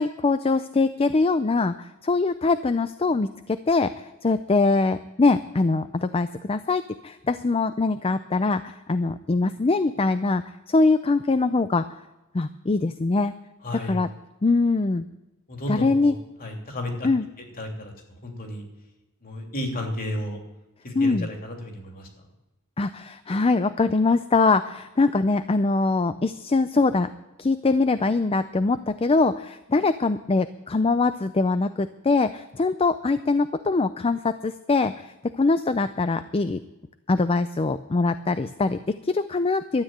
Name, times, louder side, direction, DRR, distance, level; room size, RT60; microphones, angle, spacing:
voice 1, 0.0-3.9 4.2-11.9 12.3-13.3 13.7-14.1 14.4-15.1 15.7-16.1 17.0-17.3 20.9-21.3 22.8-27.1 27.4-36.6 37.1-39.8, left 3 dB, 25° left, 11 dB, 0.5 m, -23 dB
voice 2, 13.6-14.0 15.5-16.1 16.4-17.1 17.6-17.9 18.2-18.6 19.2-20.4 20.8-22.1, left 1 dB, 45° left, 2 dB, 3.0 m, -32 dB
13.0 x 8.7 x 9.1 m, 1.0 s
head